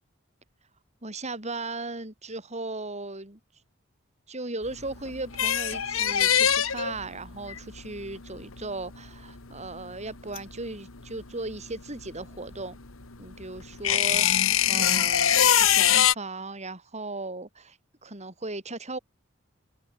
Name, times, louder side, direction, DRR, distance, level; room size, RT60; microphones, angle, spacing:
voice 1, 1.0-3.4 4.3-12.8 13.2-19.0, right 2 dB, 35° right, 7.6 m, -37 dB
sound 1, 4.6-11.2 11.5-16.1, left 10 dB, 80° left, 1.9 m, -23 dB
open air
head